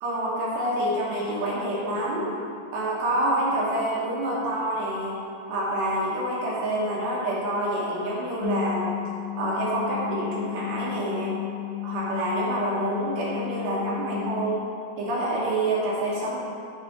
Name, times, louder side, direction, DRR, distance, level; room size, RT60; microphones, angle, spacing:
voice 1, 0.0-2.3 2.7-5.2 5.5-8.9 9.4-11.4 11.8-14.6 15.0-16.4, right 1 dB, 80° right, -6 dB, 3.4 m, -27 dB
sound 1, 8.4-14.2, left 14 dB, 80° left, 2.8 m, -33 dB
8.7 x 6.7 x 3.6 m, 2.5 s
omnidirectional pair, 5.0 m